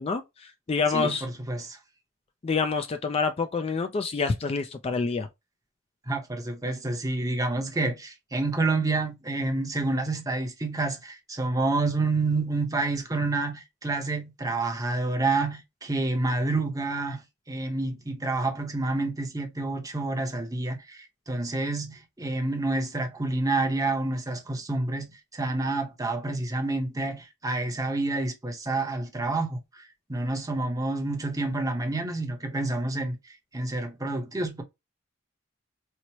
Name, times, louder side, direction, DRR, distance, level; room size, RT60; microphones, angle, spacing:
voice 1, 0.0-1.3 2.4-5.3, left 4 dB, 30° left, 0.3 m, -27 dB
voice 2, 0.9-1.8 6.1-33.2 33.5-34.6, right 2 dB, 20° right, 0.8 m, -28 dB
4.5 x 2.1 x 2.7 m
head